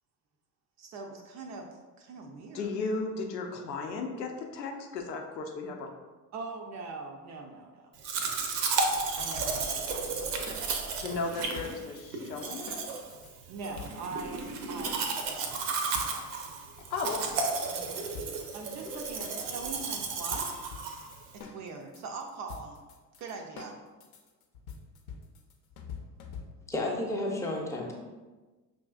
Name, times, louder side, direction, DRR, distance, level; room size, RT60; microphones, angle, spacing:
voice 1, 0.8-1.7 2.0-2.7 6.3-8.4 9.2-10.6 13.5-15.0 15.3-16.5 18.5-20.5 21.3-22.8 23.2-23.8, right 4 dB, 35° right, 3 dB, 0.4 m, -42 dB
voice 2, 2.5-5.9 11.0-12.8 16.9-17.4 17.7-18.0, left 3 dB, 90° left, 3 dB, 0.6 m, -35 dB
Domestic sounds home sounds, 8.0-21.4, right 4 dB, 75° right, 0.7 m, -33 dB
sound 1, 9.4-13.3 13.8-14.5 14.9-17.7 18.1-26.8, left 5 dB, 50° left, 0.7 m, -47 dB
voice 3, 26.7-27.9, left 1 dB, 5° left, -1 dB, 0.6 m, -31 dB
5.2 x 2.5 x 2.3 m, 1.3 s
hypercardioid pair, 70°, 49 cm